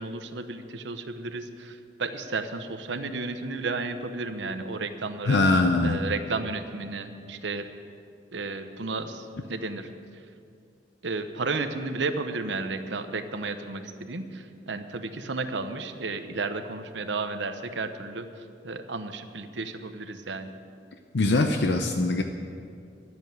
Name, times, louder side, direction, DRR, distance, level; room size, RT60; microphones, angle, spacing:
voice 1, 0.0-5.4 5.8-7.6 8.3-9.9 11.0-18.3 18.6-20.5, right 3 dB, 85° right, 8 dB, 0.9 m, -33 dB
voice 2, 5.2-6.0 21.1-22.2, left 2 dB, 75° left, 5 dB, 0.7 m, -22 dB
12.5 x 8.1 x 9.3 m, 2.4 s
head